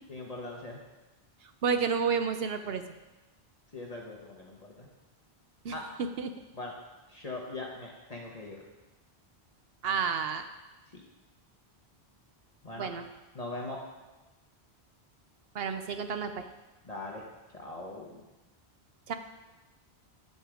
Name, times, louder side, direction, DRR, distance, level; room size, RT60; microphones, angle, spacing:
voice 1, 0.1-0.8 3.7-4.9 5.7-5.8 6.5-6.7 7.1-8.6 10.9-11.0 12.6-12.9 13.3-13.8 16.8-17.2 17.5-18.2, left 2 dB, 40° left, -1 dB, 1.1 m, -41 dB
voice 2, 1.6-2.8 5.6-5.7 6.0-6.3 9.8-10.4 12.8-13.0 15.5-16.4 19.1-19.2, right 6 dB, 70° right, 8 dB, 0.9 m, -30 dB
9.5 x 8.0 x 4.9 m, 1.1 s
omnidirectional pair, 1.1 m